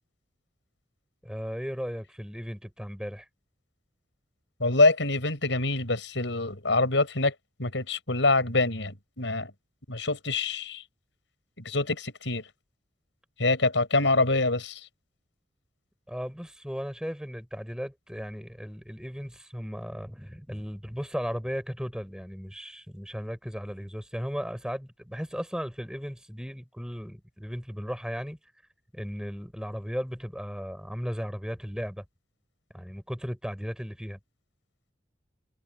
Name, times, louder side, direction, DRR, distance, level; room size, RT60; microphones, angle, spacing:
voice 1, 1.2-3.3 16.1-28.4 28.9-32.0 32.7-34.2, equal, 5° right, 5.3 m, -36 dB
voice 2, 4.6-7.3 7.6-9.5 9.9-10.8 11.6-12.4 13.4-14.8, left 2 dB, 85° left, 6.3 m, -25 dB
head